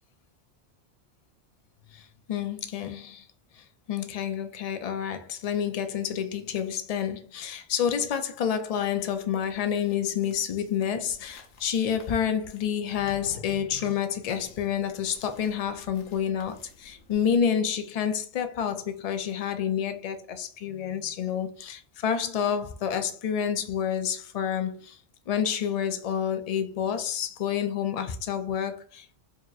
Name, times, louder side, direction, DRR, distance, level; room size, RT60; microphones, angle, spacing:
voice 1, 1.9-3.3 3.5-25.0 25.3-29.2, left 8 dB, 60° left, 0.4 m, -29 dB
sound 1, 9.0-17.4, left 2 dB, 85° left, 1.0 m, -50 dB
4.5 x 2.9 x 2.4 m
omnidirectional pair, 1.2 m